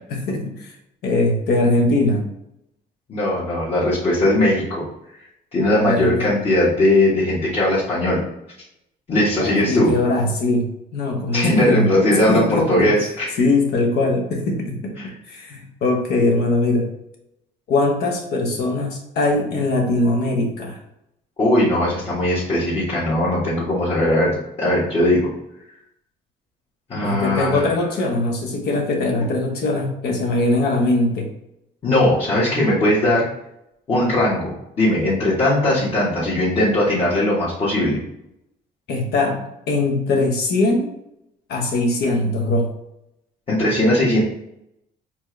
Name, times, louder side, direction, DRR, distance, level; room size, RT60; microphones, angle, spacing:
voice 1, 0.1-0.7 1.0-2.2 5.8-6.3 9.3-12.9 13.4-16.9 17.7-20.8 27.0-31.3 38.9-40.9 41.5-42.7, left 2 dB, 75° left, 2 dB, 1.1 m, -21 dB
voice 2, 3.1-4.8 5.5-8.2 9.1-9.9 11.3-13.3 15.0-15.1 21.4-25.3 26.9-27.7 31.8-33.2 33.9-38.0 43.5-44.2, left 1 dB, 35° left, -8 dB, 1.4 m, -19 dB
4.4 x 2.9 x 3.3 m, 0.81 s
cardioid pair, 110°, 17 cm